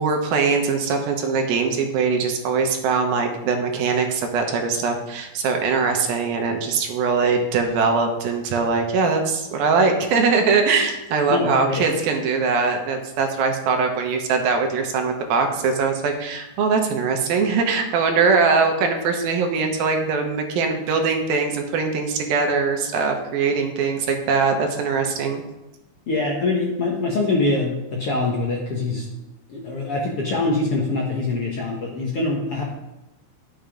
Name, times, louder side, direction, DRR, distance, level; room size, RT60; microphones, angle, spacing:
voice 1, 0.0-25.4, right 4 dB, 75° right, 4 dB, 2.9 m, -21 dB
voice 2, 11.3-11.8 26.1-29.1 29.5-32.6, left 3 dB, 60° left, -2 dB, 1.6 m, -24 dB
11.0 x 7.1 x 5.1 m, 0.96 s
omnidirectional pair, 4.3 m